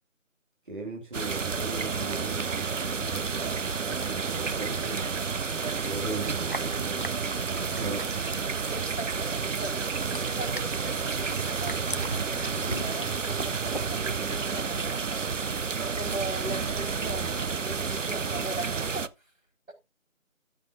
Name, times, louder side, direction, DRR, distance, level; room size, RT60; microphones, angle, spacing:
voice 1, 0.7-3.3 3.8-5.1 5.8-7.1 7.6-8.1, right 3 dB, 40° right, 2.4 m, -38 dB
sound 1, 1.1-19.1, right 5 dB, 65° right, 0.7 m, -30 dB
sound 2, 6.3-8.8 9.1-14.0, right 1 dB, 40° left, 0.5 m, -39 dB
voice 2, 8.7-12.4 12.7-15.0 16.0-19.1, right 1 dB, 85° right, 5.0 m, -39 dB
14.5 x 7.5 x 2.6 m
figure-of-eight pair, 175°, 40 cm